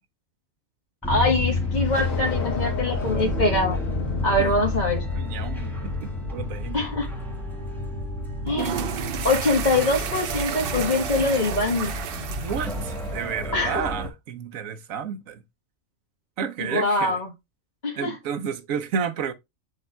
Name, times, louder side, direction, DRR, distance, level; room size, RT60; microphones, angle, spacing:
sound 1, 1.0-14.1, left 2 dB, ahead, 1.7 m, -30 dB
voice 1, 1.1-3.8 4.2-5.0 6.7-7.1 8.5-8.8 9.2-11.9 13.5-13.8 16.6-17.3 17.8-18.2, left 2 dB, 35° left, 1.5 m, -23 dB
sound 2, 1.5-7.8, left 4 dB, 65° left, 1.7 m, -37 dB
voice 2, 5.1-5.7 6.0-6.8 12.4-15.4 16.4-17.2 18.0-19.3, right 7 dB, 75° right, 1.2 m, -31 dB
sound 3, 8.4-13.5, right 8 dB, 55° right, 0.7 m, -32 dB
7.0 x 3.4 x 4.4 m
omnidirectional pair, 1.4 m